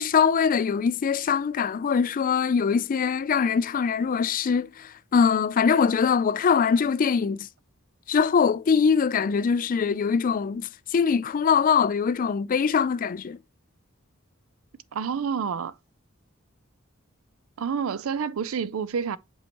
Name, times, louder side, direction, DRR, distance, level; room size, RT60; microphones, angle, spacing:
voice 1, 0.0-7.5 8.1-13.4, left 6 dB, 40° left, 0.4 m, -23 dB
voice 2, 14.9-15.7 17.6-19.2, right 6 dB, 80° right, 0.5 m, -28 dB
7.6 x 4.6 x 2.9 m
head